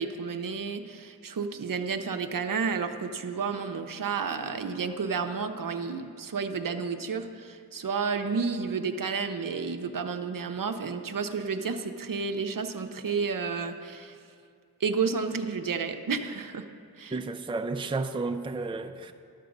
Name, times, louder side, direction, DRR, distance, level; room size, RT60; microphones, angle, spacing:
voice 1, 0.0-14.2 14.8-16.7 17.0-17.2, right 5 dB, 55° right, 0.7 m, -31 dB
voice 2, 17.1-19.1, right 3 dB, 15° right, 0.5 m, -32 dB
12.0 x 6.7 x 5.2 m
cardioid pair, 45°, 39 cm